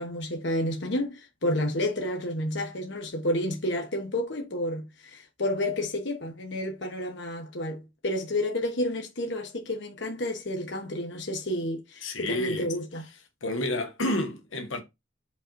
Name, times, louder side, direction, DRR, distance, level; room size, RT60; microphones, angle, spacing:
voice 1, 0.0-13.0, left 1 dB, 60° left, 1.1 m, -30 dB
voice 2, 12.0-12.7 13.4-14.8, left 1 dB, 80° left, 1.3 m, -29 dB
5.4 x 3.8 x 4.6 m
head